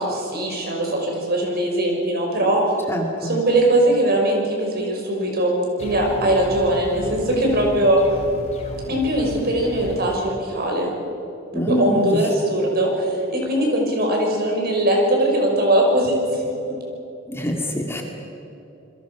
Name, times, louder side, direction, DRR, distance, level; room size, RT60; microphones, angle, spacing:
voice 1, 0.0-2.6 3.2-8.0 8.9-10.9 11.5-16.4, right 1 dB, 50° right, 0 dB, 6.0 m, -20 dB
voice 2, 2.9-3.4 11.5-12.1 17.3-18.0, equal, 10° left, 1 dB, 2.4 m, -24 dB
sound 1, 5.8-10.2, equal, 35° left, 4.4 m, -35 dB
28.0 x 21.5 x 6.2 m, 2.9 s
head